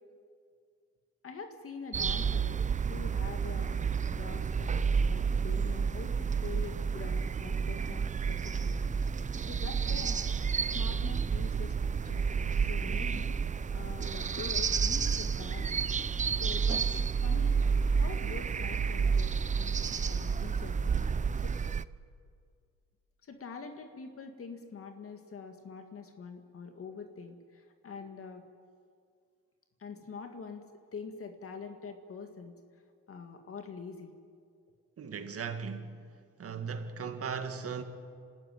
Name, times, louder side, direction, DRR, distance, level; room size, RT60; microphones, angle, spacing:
voice 1, 1.2-8.9 9.5-10.2 10.7-12.2 12.6-13.4 13.7-15.8 16.4-17.6 18.0-19.8 20.1-20.9 21.4-21.6 23.2-28.4 29.8-32.6 33.1-34.1, left 5 dB, 45° left, 2.0 m, -45 dB
sound 1, 1.9-21.8, right 6 dB, 25° right, 0.5 m, -30 dB
voice 2, 35.0-35.9 36.4-37.8, right 6 dB, 50° right, 2.0 m, -37 dB
27.0 x 13.0 x 9.4 m
cardioid pair, 90°, 30 cm